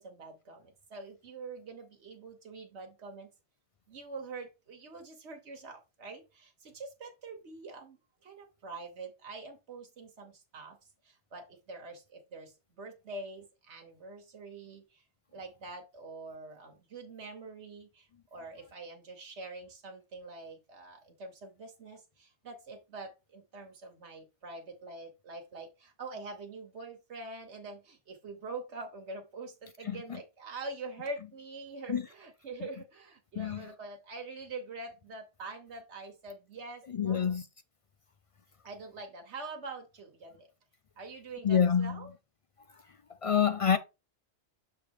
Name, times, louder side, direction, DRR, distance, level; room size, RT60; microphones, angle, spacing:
voice 1, 0.0-3.3 3.9-10.8 11.0-15.0 15.3-37.3 38.6-40.5 41.0-42.1, right 3 dB, 90° right, 1.5 m, -45 dB
voice 2, 29.9-30.2 31.9-32.0 33.4-33.6 36.9-37.4 41.4-42.0 43.2-43.8, left 7 dB, 55° left, 0.3 m, -27 dB
6.6 x 3.4 x 4.6 m
omnidirectional pair, 1.1 m